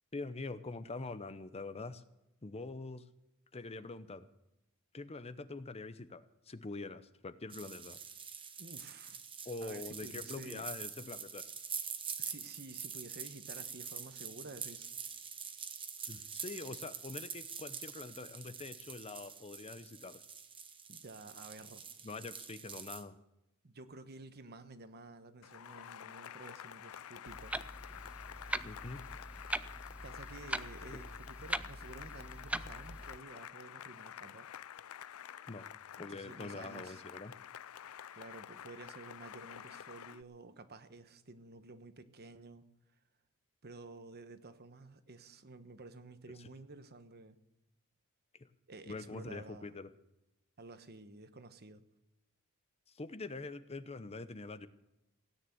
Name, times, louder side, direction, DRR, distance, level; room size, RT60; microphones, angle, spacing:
voice 1, 0.1-2.0 2.4-3.0 3.5-4.3 4.9-8.0 9.4-11.5 16.1-20.2 22.0-23.2 28.6-29.0 35.5-35.7 36.0-37.3 46.4-46.5 48.4-48.5 48.9-49.9 52.9-54.7, left 3 dB, 30° left, 0.7 m, -44 dB
sound 1, 7.5-23.0, right 6 dB, 25° right, 1.3 m, -45 dB
voice 2, 8.6-9.2 9.6-10.7 12.2-14.9 20.9-21.8 23.6-27.6 30.0-34.5 36.0-37.0 38.1-42.6 43.6-47.4 48.7-49.7 50.6-51.9, right 3 dB, 50° right, 1.2 m, -52 dB
Cheering / Applause, 25.4-40.2, left 10 dB, 80° left, 0.4 m, -49 dB
Clock, 27.3-33.2, right 1 dB, 5° right, 0.5 m, -42 dB
17.0 x 9.7 x 7.8 m
head